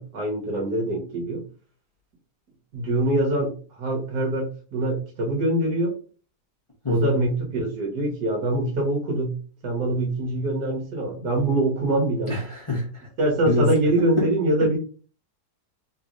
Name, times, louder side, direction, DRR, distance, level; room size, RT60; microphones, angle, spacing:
voice 1, 0.0-1.4 2.7-5.9 6.9-9.4 9.6-12.4 13.2-14.8, right 1 dB, 80° right, 0 dB, 1.8 m, -24 dB
voice 2, 6.8-7.2 12.3-13.1 13.4-13.7 14.2-14.3 14.6-14.8, left 2 dB, 25° left, -3 dB, 0.9 m, -26 dB
3.9 x 3.0 x 2.5 m, 0.38 s
omnidirectional pair, 1.7 m